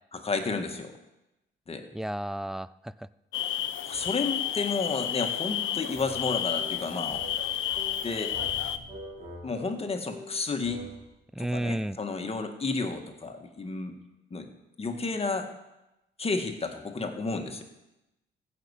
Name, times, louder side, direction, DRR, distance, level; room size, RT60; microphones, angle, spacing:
voice 1, 0.1-0.9 1.7-1.8 3.8-7.2 8.0-8.3 9.4-10.8 11.4-13.9 14.3-14.5 14.8-15.5 16.2-17.6, left 4 dB, 30° left, 5 dB, 1.7 m, -31 dB
voice 2, 1.9-2.9 11.4-12.0, right 1 dB, ahead, 18 dB, 0.3 m, -32 dB
sound 1, 3.3-8.8, left 11 dB, 75° left, 0.7 m, -31 dB
sound 2, 5.5-11.0, equal, 45° right, 4.3 m, -45 dB
15.0 x 6.0 x 8.3 m, 0.95 s
cardioid pair, 90°, 20 cm